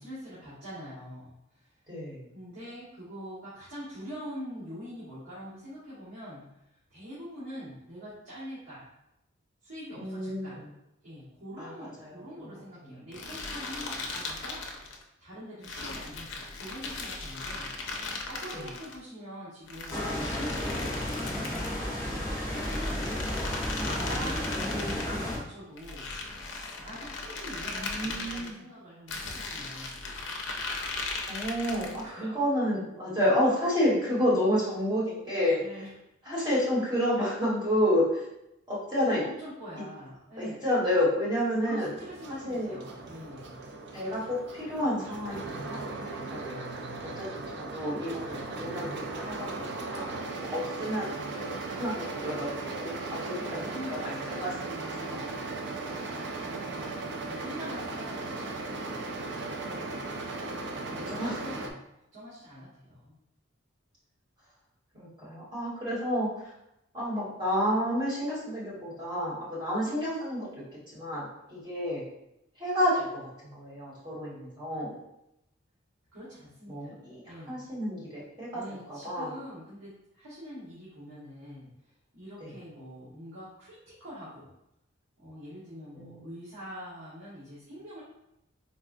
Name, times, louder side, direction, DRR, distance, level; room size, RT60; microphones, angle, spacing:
voice 1, 0.0-1.8 2.3-8.9 9.6-10.6 11.0-14.6 15.2-17.7 18.3-22.9 23.8-26.1 26.8-30.0 31.8-32.4 35.6-35.9 39.2-40.6 41.5-43.6 53.2-55.4 55.9-60.0 60.9-61.8 62.1-63.2 76.1-76.9 77.2-77.6 78.5-84.5 85.2-88.0, equal, 75° right, -12 dB, 1.3 m, -44 dB
voice 2, 1.9-2.3 9.9-10.6 11.6-12.5 12.8-13.0 15.6-15.7 18.5-18.6 23.8-24.1 27.7-28.6 31.3-35.6 36.2-38.3 38.7-39.2 39.8-39.9 40.4-41.9 42.3-42.8 43.9-46.7 47.0-52.5 52.8-54.7 55.1-55.3 60.5-60.6 61.1-61.4 64.9-66.5 66.9-70.5 70.9-72.1 72.6-75.0 76.7-78.6 78.9-79.3 82.4-82.5 85.9-86.3, equal, 20° right, -9 dB, 1.4 m, -30 dB
sound 1, 13.1-15.0 15.6-18.9 19.7-21.8 22.4-25.1 25.8-28.5 29.1-32.1, left 3 dB, 60° left, 0.5 m, -38 dB
sound 2, 19.9-25.4, left 1 dB, 15° left, 0.7 m, -32 dB
sound 3, 41.8-61.7, right 3 dB, 55° right, 0.3 m, -37 dB
4.1 x 2.4 x 2.5 m, 0.85 s
head